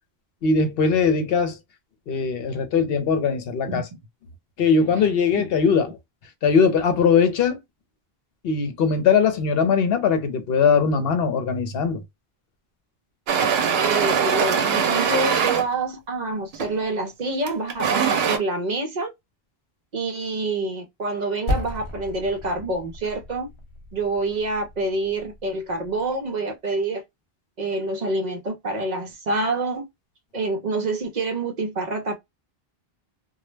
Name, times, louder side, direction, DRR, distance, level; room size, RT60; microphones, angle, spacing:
voice 1, 0.4-1.6 2.1-3.9 4.6-6.0 6.4-7.6 8.4-12.0, left 5 dB, 70° left, 0.8 m, -20 dB
sound 1, 13.3-15.7 16.5-16.8 17.5-18.4, right 7 dB, 80° right, 0.8 m, -21 dB
voice 2, 13.8-19.1 19.9-23.5 23.9-27.0 27.6-29.9 30.3-32.1, right 2 dB, 55° right, 0.6 m, -27 dB
Percussion, 21.5-26.3, left 2 dB, 35° left, 0.6 m, -34 dB
2.2 x 2.0 x 3.1 m
omnidirectional pair, 1.0 m